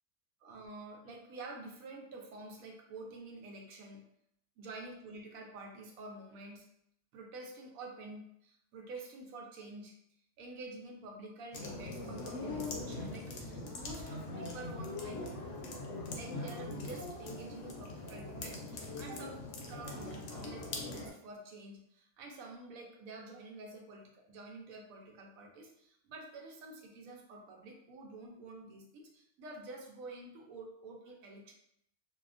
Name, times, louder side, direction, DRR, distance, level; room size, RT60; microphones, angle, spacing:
voice 1, 0.4-4.0 4.6-6.7 7.1-10.0 10.4-15.3 16.1-31.5, right 2 dB, 90° right, 1 dB, 1.0 m, -48 dB
sound 1, 11.5-21.1, left 2 dB, 70° left, 0.8 m, -42 dB
2.7 x 2.2 x 2.4 m, 0.72 s
omnidirectional pair, 1.4 m